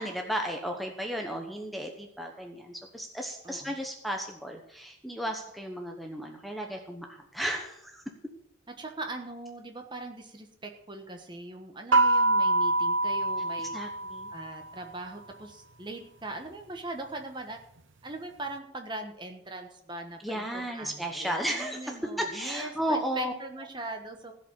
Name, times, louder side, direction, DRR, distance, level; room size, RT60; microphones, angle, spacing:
voice 1, 0.0-8.0 13.7-14.3 20.2-23.3, equal, ahead, 2 dB, 1.0 m, -34 dB
voice 2, 3.4-3.8 8.8-13.8 14.3-17.6 18.0-24.3, right 2 dB, 20° right, 3 dB, 1.3 m, -40 dB
sound 1, 11.9-14.6, right 2 dB, 65° right, 0.8 m, -25 dB
16.0 x 5.3 x 8.5 m, 0.75 s
head